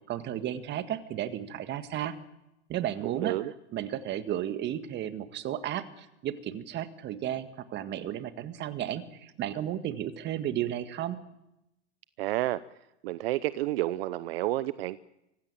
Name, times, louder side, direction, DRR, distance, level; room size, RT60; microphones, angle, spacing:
voice 1, 0.1-2.2 2.7-3.4 3.7-11.2, right 11 dB, 30° right, 10 dB, 1.8 m, -33 dB
voice 2, 3.1-3.5 12.2-12.6 13.0-15.0, right 16 dB, 60° right, 16 dB, 0.8 m, -30 dB
24.5 x 16.5 x 9.0 m, 0.90 s
hypercardioid pair, 120°, 34 cm